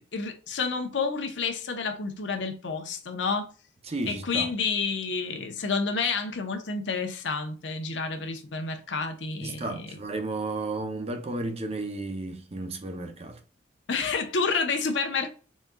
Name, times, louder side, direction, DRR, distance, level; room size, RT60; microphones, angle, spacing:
voice 1, 0.0-3.5 4.1-9.9 13.9-15.3, left 4 dB, 85° left, 0.9 m, -29 dB
voice 2, 3.9-4.5 9.4-13.4, right 2 dB, 35° right, 0.7 m, -33 dB
4.2 x 3.7 x 2.3 m
head